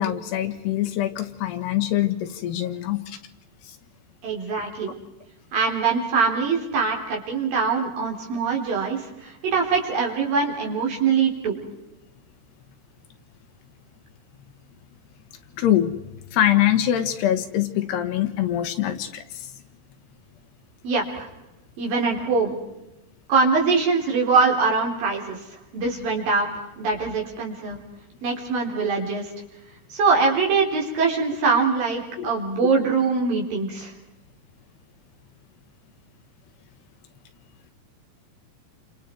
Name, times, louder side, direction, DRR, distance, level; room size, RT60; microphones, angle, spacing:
voice 1, 0.0-3.2 15.6-16.0 16.3-19.2 32.2-32.3, left 12 dB, 75° left, 8 dB, 3.4 m, -23 dB
voice 2, 4.2-4.9 5.5-11.6 20.8-21.3 21.8-22.6 23.3-25.4 25.7-26.5 26.8-27.8 28.2-29.3 29.9-33.9, right 4 dB, 55° right, -1 dB, 5.6 m, -23 dB
29.5 x 26.5 x 4.6 m, 0.96 s
omnidirectional pair, 4.8 m